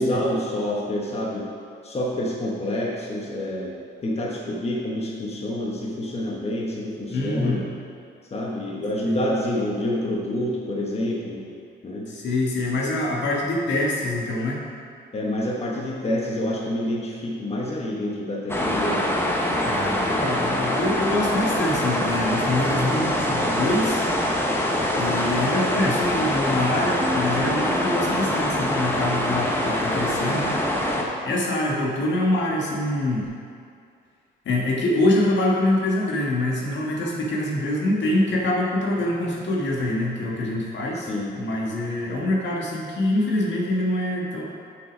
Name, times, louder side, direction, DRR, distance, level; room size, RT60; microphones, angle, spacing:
voice 1, 0.0-1.5 1.8-7.7 8.3-11.5 11.8-12.1 15.1-19.3 40.9-41.3 42.1-42.3, left 1 dB, 30° left, -3 dB, 1.3 m, -28 dB
voice 2, 7.1-7.6 9.0-9.2 12.1-14.6 19.6-24.0 25.0-30.6 31.2-33.2 34.4-41.1 41.3-44.4, left 1 dB, 65° left, -3 dB, 1.6 m, -25 dB
sound 1, 18.5-31.0, left 1 dB, 10° left, 1.1 m, -24 dB
Bass guitar, 27.0-33.3, left 2 dB, 10° right, 1.0 m, -38 dB
6.8 x 6.5 x 5.2 m, 2.3 s
cardioid pair, 90°, 20 cm